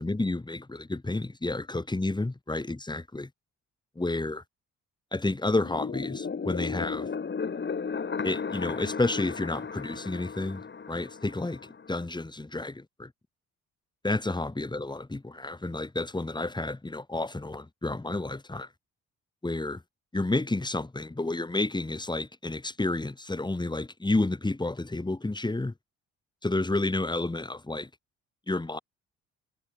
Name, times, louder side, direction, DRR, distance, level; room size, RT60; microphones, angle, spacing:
voice 1, 0.0-3.3 4.0-4.4 5.1-7.1 8.2-10.6 10.9-11.6 11.9-13.1 14.0-18.7 19.4-19.8 20.1-25.7 26.4-27.9 28.5-28.8, left 2 dB, 15° left, 4.6 m, -30 dB
sound 1, 5.5-12.0, left 5 dB, 35° left, 6.7 m, -35 dB
cardioid pair, 90°, 30 cm